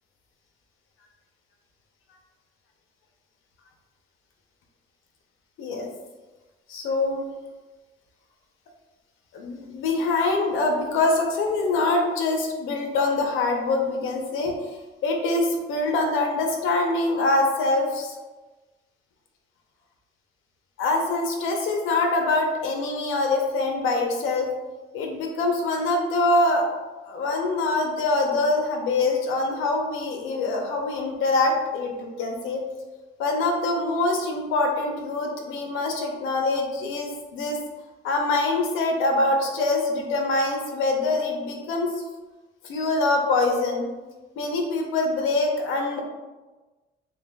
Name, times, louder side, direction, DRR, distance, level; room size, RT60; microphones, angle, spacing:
voice 1, 6.7-7.2 9.3-14.7 15.0-18.1 20.8-24.5 24.9-26.7 27.0-32.6 33.2-37.6 38.0-42.0 42.6-43.9 44.4-46.0, left 2 dB, 90° left, 2 dB, 0.8 m, -24 dB
6.7 x 2.3 x 2.2 m, 1.2 s
cardioid pair, 90°, 20 cm